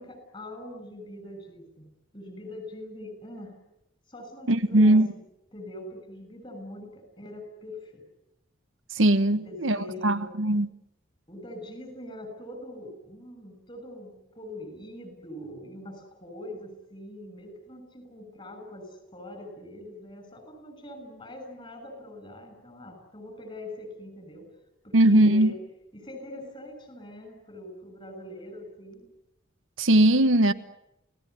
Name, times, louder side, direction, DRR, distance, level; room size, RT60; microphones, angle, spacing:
voice 1, 0.0-3.5 4.1-5.0 5.5-8.0 9.3-10.3 11.3-24.5 24.8-25.6 25.9-29.1, left 1 dB, 25° left, 6.8 m, -43 dB
voice 2, 4.5-5.1 8.9-10.7 24.9-25.5 29.8-30.5, right 1 dB, 85° right, 1.3 m, -20 dB
29.5 x 17.5 x 9.4 m
head